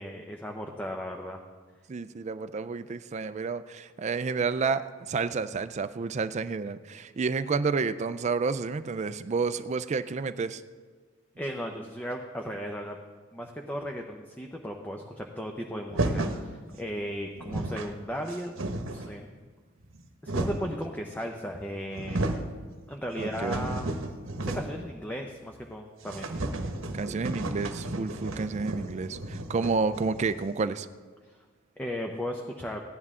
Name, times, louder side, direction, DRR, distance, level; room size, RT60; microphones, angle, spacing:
voice 1, 0.0-1.4 11.4-13.0 13.3-18.6 18.9-19.3 20.2-22.2 22.9-23.9 24.4-26.3 31.8-32.8, equal, 10° left, 2 dB, 0.6 m, -36 dB
voice 2, 1.9-10.6 23.2-23.8 26.9-30.9, right 4 dB, 35° right, 11 dB, 0.4 m, -30 dB
sound 1, 15.9-16.4 17.1-17.2 17.3-17.9 18.3-19.1 19.8-20.8 21.5-21.6 21.9-22.5 22.9-24.9 25.1-25.2 25.5-25.6 26.0-30.5, right 2 dB, 70° right, 1.0 m, -33 dB
15.5 x 10.5 x 3.7 m, 1.5 s
head